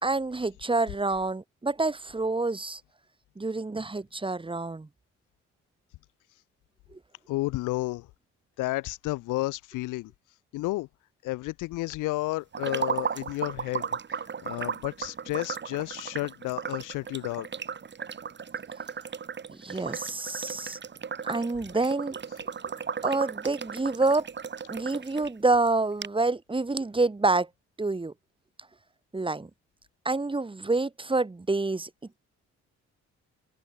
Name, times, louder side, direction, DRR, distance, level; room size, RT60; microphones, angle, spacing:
voice 1, 0.0-2.8 3.4-4.9 6.9-7.0 19.5-20.8 21.2-22.2 23.0-24.3 24.7-27.5 27.8-28.1 29.1-29.5 30.1-31.9, right 3 dB, 15° right, 2.0 m, -27 dB
voice 2, 7.3-8.1 8.6-10.1 10.5-10.9 11.2-17.5 19.7-19.8, left 19 dB, 90° left, 0.6 m, -32 dB
sound 1, 12.5-25.3 25.7-25.8 26.0-26.1, right 6 dB, 35° right, 1.8 m, -35 dB
open air
cardioid pair, 90°, 30 cm